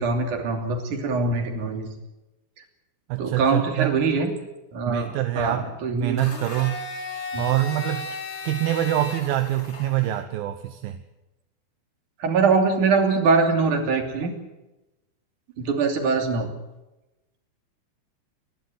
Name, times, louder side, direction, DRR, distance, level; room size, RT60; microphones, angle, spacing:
voice 1, 0.0-1.9 3.2-4.3 4.7-6.2 7.3-7.4 12.2-14.3 15.6-16.5, right 4 dB, 50° right, 4 dB, 4.1 m, -23 dB
voice 2, 3.1-4.0 4.9-5.7 5.9-6.8 7.4-8.1 8.4-11.0, right 14 dB, 70° right, 8 dB, 2.5 m, -25 dB
Domestic sounds home sounds, 6.2-10.2, left 3 dB, 35° left, 1.1 m, -35 dB
30.0 x 11.5 x 9.5 m, 1.0 s
omnidirectional pair, 4.8 m